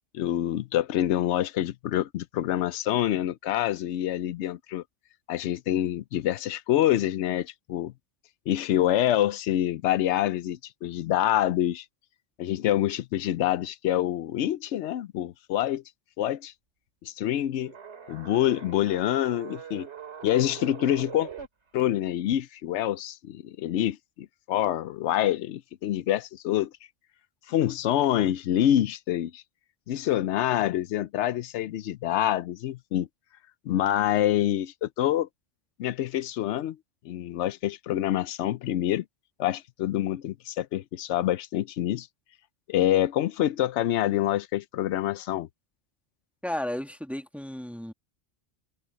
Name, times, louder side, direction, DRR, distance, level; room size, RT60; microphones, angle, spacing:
voice 1, 0.1-4.8 5.3-7.9 8.5-11.8 12.4-15.8 16.2-16.5 17.0-17.7 18.1-19.9 20.2-21.3 21.7-26.7 27.5-29.4 29.9-33.1 33.7-35.3 35.8-36.8 37.0-39.0 39.4-42.1 42.7-45.5, left 12 dB, 90° left, 0.9 m, -26 dB
sound 1, 17.6-21.5, right 7 dB, 90° right, 2.7 m, -42 dB
voice 2, 46.4-47.9, left 1 dB, ahead, 1.5 m, -33 dB
omnidirectional pair, 1.1 m